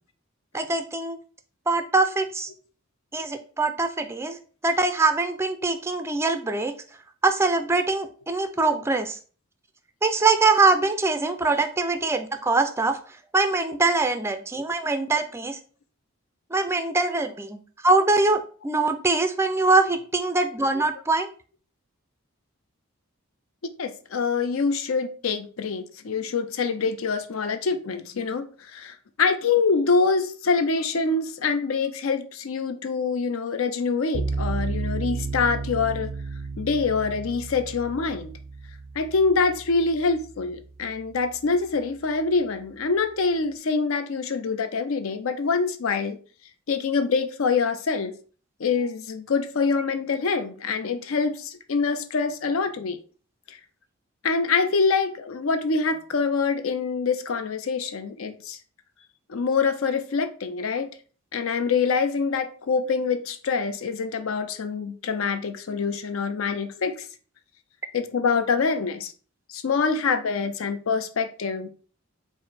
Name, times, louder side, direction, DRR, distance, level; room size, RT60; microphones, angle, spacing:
voice 1, 0.5-1.2 1.7-2.5 3.1-6.7 7.2-9.2 10.0-13.0 13.3-15.6 16.5-21.3, right 3 dB, 10° right, 0.3 m, -23 dB
voice 2, 23.8-36.1 36.6-38.3 39.0-46.2 46.7-48.1 48.6-53.0 53.5-53.6 54.2-58.6 59.3-60.9 61.3-66.9 67.9-69.1 69.5-71.7, left 4 dB, 75° left, 0.5 m, -25 dB
sound 1, 34.1-41.2, right 4 dB, 80° right, 0.5 m, -33 dB
4.8 x 2.1 x 4.1 m
head